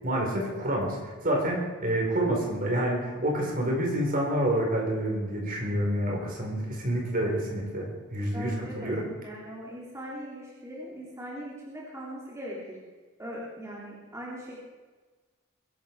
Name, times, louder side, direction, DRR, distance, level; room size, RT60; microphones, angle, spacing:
voice 1, 0.0-9.0, right 1 dB, 40° right, 0 dB, 4.4 m, -28 dB
voice 2, 8.3-9.0 9.2-12.8 13.2-14.6, equal, 15° right, -5 dB, 3.0 m, -40 dB
22.0 x 11.5 x 4.7 m, 1.3 s
head